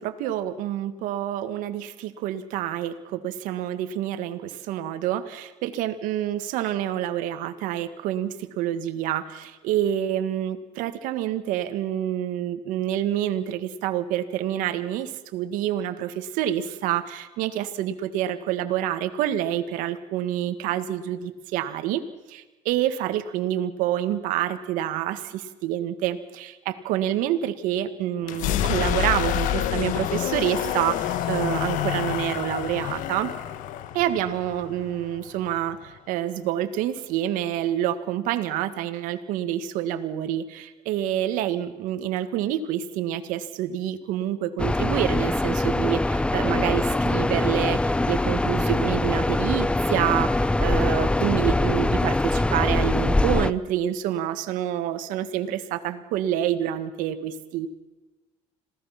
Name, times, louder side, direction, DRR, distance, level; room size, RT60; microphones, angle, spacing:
voice 1, 0.0-22.0 22.3-33.3 33.9-57.7, right 11 dB, 85° right, 10 dB, 1.7 m, -27 dB
sound 1, 28.2-36.0, left 11 dB, 75° left, 1.3 m, -28 dB
sound 2, 44.6-53.5, left 2 dB, 10° left, 0.6 m, -23 dB
26.5 x 17.0 x 5.9 m, 1.1 s
cardioid pair, 95°, 14 cm